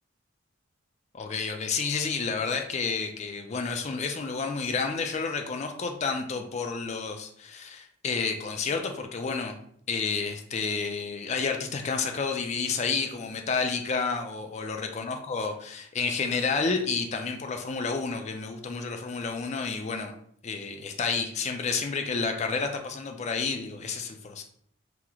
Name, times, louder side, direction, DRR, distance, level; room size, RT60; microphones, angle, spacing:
voice 1, 1.1-9.5 9.9-20.1 20.4-24.4, left 5 dB, 30° left, 5 dB, 0.3 m, -30 dB
2.9 x 2.0 x 3.6 m, 0.65 s
head